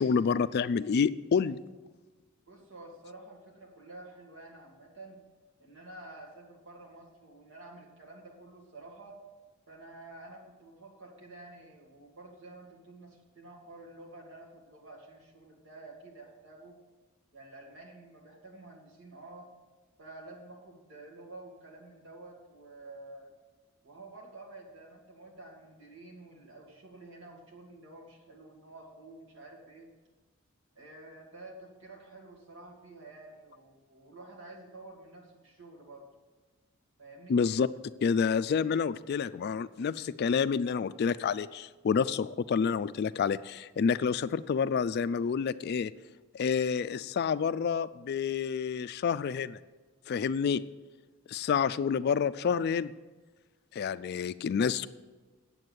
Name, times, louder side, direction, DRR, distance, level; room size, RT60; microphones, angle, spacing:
voice 1, 0.0-1.6 37.3-37.7 38.0-45.9 46.3-49.6 50.1-50.6 51.3-52.9 53.7-54.9, left 6 dB, 50° left, 15 dB, 0.3 m, -28 dB
voice 2, 2.5-5.2 5.6-9.2 9.7-16.8 17.3-19.5 20.0-23.3 23.8-29.9 30.8-36.1 37.0-37.4, right 2 dB, 60° right, 0 dB, 2.4 m, -50 dB
9.1 x 7.6 x 8.0 m, 1.3 s
head